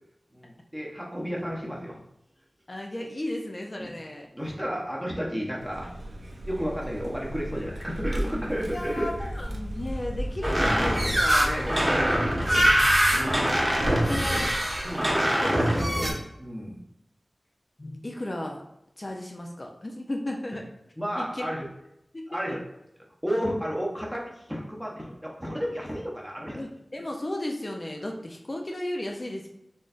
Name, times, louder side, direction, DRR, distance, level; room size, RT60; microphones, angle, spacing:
voice 1, 0.3-2.0 3.8-3.9 4.3-5.9 6.4-9.3 11.4-11.9 13.1-13.4 14.8-15.2 16.4-16.8 21.0-21.7 22.3-22.6 23.2-26.6, equal, 5° right, -3 dB, 0.9 m, -32 dB
voice 2, 2.7-4.3 8.7-11.8 13.1-13.6 13.9-14.5 15.4-16.2 17.8-18.6 19.0-20.7 21.2-21.5 22.1-22.2 22.5-22.6 26.5-29.5, left 1 dB, 40° left, 1 dB, 0.5 m, -34 dB
Vehicle, 5.5-15.9, equal, 80° right, 0.5 m, -35 dB
sound 1, 10.4-16.1, equal, 25° right, 1.1 m, -23 dB
4.2 x 3.2 x 2.5 m, 0.84 s
wide cardioid pair, 55°, 0 cm